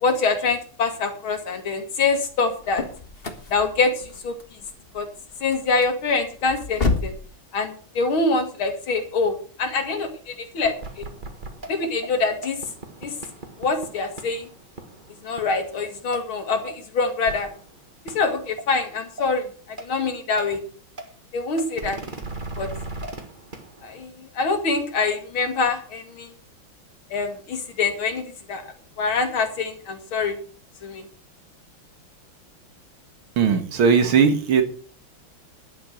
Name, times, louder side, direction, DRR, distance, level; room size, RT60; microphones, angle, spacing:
voice 1, 0.0-2.8 3.5-3.9 4.2-4.3 4.9-5.1 5.4-7.1 7.5-11.1 11.7-12.6 13.0-13.1 13.6-14.5 15.2-17.5 18.1-19.5 19.8-20.6 21.3-22.0 22.6-22.7 23.8-26.3 27.1-28.6 29.0-30.4 30.8-31.0, left 4 dB, 85° left, 6 dB, 3.0 m, -25 dB
sound 1, 2.3-7.3, left 3 dB, 30° left, 1.6 m, -30 dB
sound 2, 10.6-15.8 16.1-16.2 16.7-16.8 17.3-17.7 18.1-18.6 19.2-19.3 19.8-19.9 20.4-20.5 21.0-21.1 21.6-24.0, right 2 dB, 25° right, 1.6 m, -37 dB
voice 2, 33.4-34.6, right 6 dB, 90° right, 8 dB, 2.5 m, -18 dB
11.5 x 8.9 x 6.4 m, 0.43 s
omnidirectional pair, 2.2 m